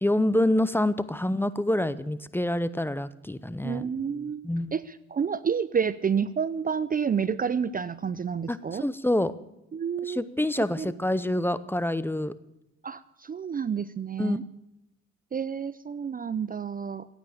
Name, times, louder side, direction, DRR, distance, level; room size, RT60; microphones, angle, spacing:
voice 1, 0.0-3.8 4.4-4.7 8.5-9.3 10.0-12.3 14.2-14.4, left 1 dB, 5° left, 16 dB, 0.7 m, -26 dB
voice 2, 3.6-4.4 4.7-8.8 9.7-10.2 10.8-10.9 12.8-14.4 15.3-17.1, right 6 dB, 30° right, 16 dB, 0.5 m, -29 dB
16.0 x 9.0 x 8.6 m, 0.87 s
cardioid pair, 90°, 30 cm